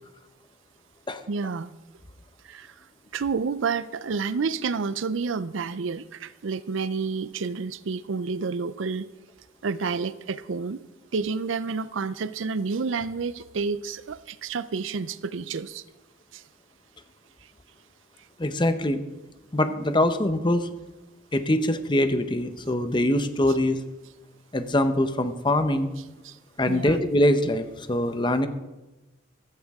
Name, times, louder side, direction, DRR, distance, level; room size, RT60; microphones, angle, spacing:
voice 1, 1.3-1.7 2.5-2.7 3.1-9.1 9.6-10.8 11.1-15.8 16.3-16.4 26.2-26.4 26.7-27.0, right 5 dB, 70° right, 16 dB, 0.5 m, -29 dB
voice 2, 18.4-19.0 19.5-20.7 21.3-23.8 24.5-25.9 26.6-28.5, left 1 dB, 25° left, 9 dB, 0.8 m, -23 dB
15.0 x 13.5 x 3.6 m, 1.1 s
head